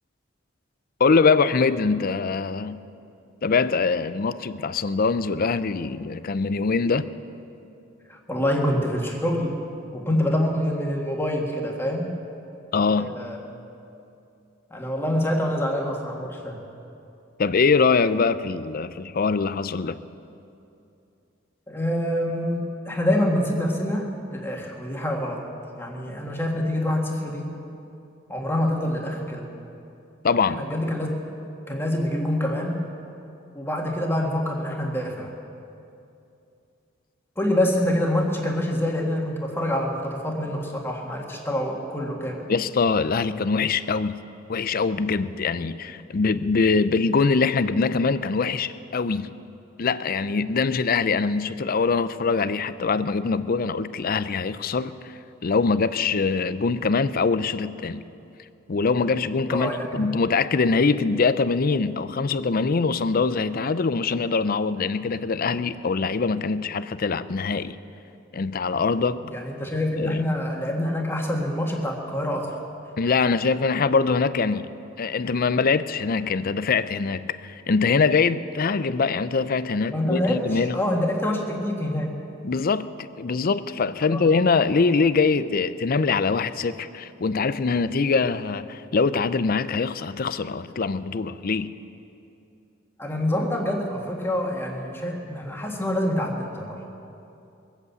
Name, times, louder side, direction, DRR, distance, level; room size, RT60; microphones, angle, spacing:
voice 1, 1.0-2.8 3.4-7.1 12.7-13.2 17.4-20.0 30.2-30.6 42.5-44.2 44.5-49.3 49.8-54.9 55.4-58.0 58.7-67.8 68.3-69.2 70.0-70.2 73.0-74.7 75.0-80.8 82.4-82.9 83.2-91.7, left 4 dB, 50° left, 14 dB, 0.5 m, -23 dB
voice 2, 8.1-9.6 9.9-12.2 12.9-13.4 14.7-16.6 21.7-25.4 25.8-27.5 28.3-29.5 30.5-31.1 31.7-32.9 33.5-35.3 37.4-42.4 59.5-60.1 69.2-72.6 79.9-82.2 84.1-84.3 93.0-96.8, left 1 dB, 10° left, 0 dB, 1.8 m, -26 dB
22.0 x 8.2 x 8.0 m, 2.7 s
head